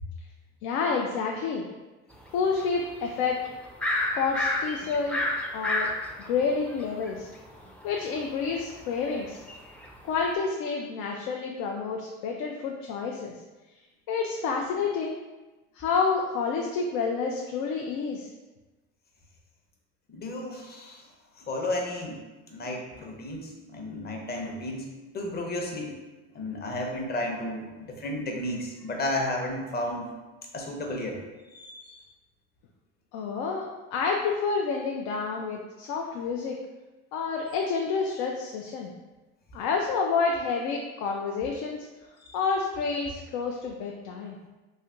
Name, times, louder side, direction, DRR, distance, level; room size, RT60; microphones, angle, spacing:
voice 1, 0.6-1.7 2.3-3.4 4.1-5.2 5.5-5.9 6.3-7.3 7.8-9.4 10.0-13.3 14.1-15.2 15.7-18.3 33.1-36.5 37.1-38.9 39.5-41.9 42.3-44.4, left 5 dB, 80° left, 1 dB, 0.5 m, -29 dB
sound 1, 2.6-3.1 3.5-7.1 7.5-10.3, left 1 dB, 5° left, 0.4 m, -29 dB
voice 2, 20.1-21.1 21.5-22.2 22.5-24.9 25.1-26.0 26.3-30.1 30.5-31.2 31.5-32.0 42.2-42.3, left 1 dB, 30° left, 1 dB, 0.7 m, -33 dB
3.2 x 2.7 x 2.6 m, 1.1 s
supercardioid pair, 100°, 31 cm